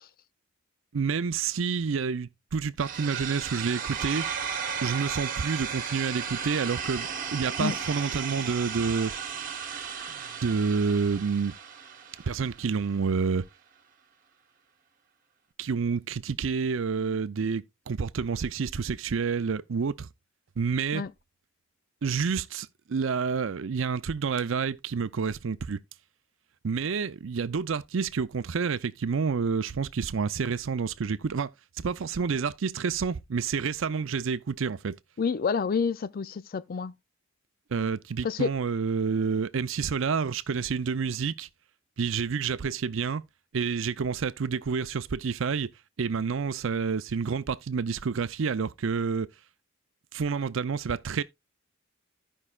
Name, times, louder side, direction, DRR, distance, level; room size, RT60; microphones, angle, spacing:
voice 1, 0.9-4.2 4.8-9.1 10.4-11.5 12.3-13.5 15.6-20.1 20.6-21.0 22.0-25.8 26.6-31.5 31.8-35.0 37.7-41.5 42.0-43.2 43.5-45.7 46.0-49.3 50.1-51.2, right 5 dB, 65° right, 0.5 m, -29 dB
sound 1, 2.8-12.8, right 7 dB, 40° right, 1.2 m, -35 dB
voice 2, 35.2-36.9 38.2-38.5, left 5 dB, 45° left, 0.4 m, -28 dB
15.0 x 5.5 x 2.4 m
head